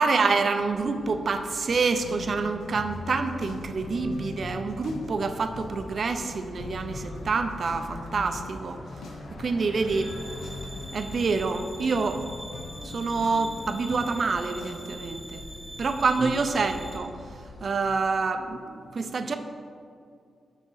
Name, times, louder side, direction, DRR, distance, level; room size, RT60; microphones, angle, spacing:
voice 1, 0.0-8.8 9.4-10.1 10.9-12.2 12.8-15.4 15.8-17.1 17.6-19.3, right 4 dB, 50° right, 8 dB, 0.5 m, -27 dB
sound 1, 0.6-17.8, left 2 dB, 55° left, 0.9 m, -44 dB
sound 2, 2.0-14.8, left 3 dB, 90° left, 0.7 m, -42 dB
sound 3, 9.8-17.0, right 1 dB, 10° right, 0.9 m, -44 dB
9.2 x 5.0 x 3.9 m, 2.4 s
cardioid pair, 100°, 0 cm